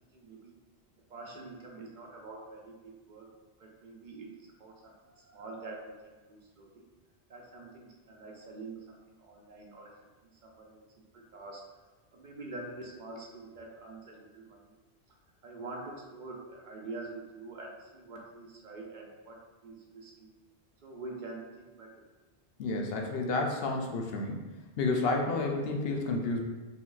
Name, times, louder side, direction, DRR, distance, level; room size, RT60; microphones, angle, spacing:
voice 1, 0.1-0.5 1.1-3.3 3.6-6.9 7.3-11.7 12.1-14.7 15.4-20.3 20.8-22.0, right 2 dB, 55° right, -1 dB, 0.6 m, -46 dB
voice 2, 22.6-24.4 24.8-26.4, left 3 dB, 75° left, 2 dB, 0.8 m, -30 dB
4.1 x 2.7 x 2.4 m, 1.2 s
omnidirectional pair, 1.1 m